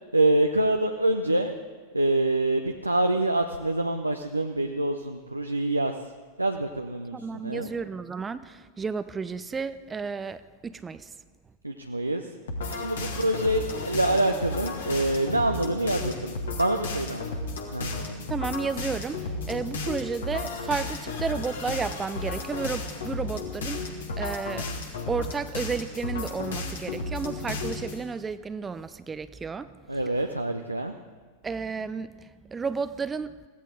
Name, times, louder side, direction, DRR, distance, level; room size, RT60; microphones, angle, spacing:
voice 1, 0.1-1.5 1.9-6.0 6.4-7.2 7.4-7.7 11.6-12.3 12.8-17.4 17.7-18.3 29.9-30.9, right 1 dB, 85° right, 5 dB, 0.6 m, -26 dB
voice 2, 7.1-11.1 18.3-24.7 25.1-29.8 31.4-33.3, right 5 dB, 15° right, 13 dB, 0.5 m, -32 dB
sound 1, 12.5-28.0, left 3 dB, 65° left, 2.2 m, -33 dB
22.5 x 16.0 x 3.8 m, 1.5 s
figure-of-eight pair, 90°, 0 cm